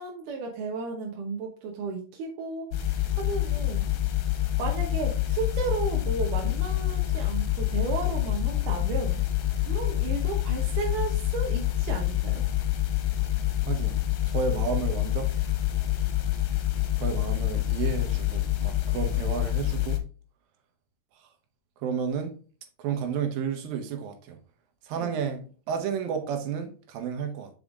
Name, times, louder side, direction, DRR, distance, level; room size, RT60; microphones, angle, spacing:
voice 1, 0.0-2.8 3.2-3.9 4.6-9.2 9.5-12.4 24.9-25.1, right 4 dB, 75° right, 2.5 m, -34 dB
sound 1, 2.7-20.0, left 14 dB, 70° left, 1.8 m, -27 dB
voice 2, 13.7-14.0 14.3-15.3 17.0-20.0 21.8-22.3 22.8-24.4 24.8-27.5, right 7 dB, 90° right, 2.8 m, -32 dB
5.5 x 5.2 x 3.6 m
omnidirectional pair, 3.9 m